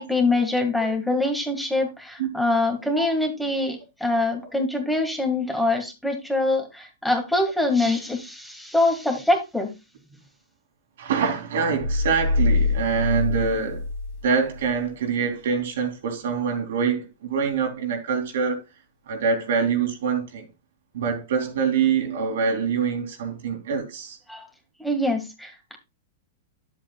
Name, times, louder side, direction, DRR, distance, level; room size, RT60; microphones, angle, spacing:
voice 1, 0.0-9.7 24.3-24.4 24.8-25.7, left 2 dB, 5° left, 1.9 m, -24 dB
voice 2, 11.0-13.8 14.2-18.6 19.1-20.4 20.9-24.2, right 6 dB, 75° right, 2.6 m, -25 dB
sound 1, 11.8-14.8, left 3 dB, 55° left, 1.8 m, -24 dB
10.5 x 7.7 x 2.4 m
hypercardioid pair, 125°, 0 cm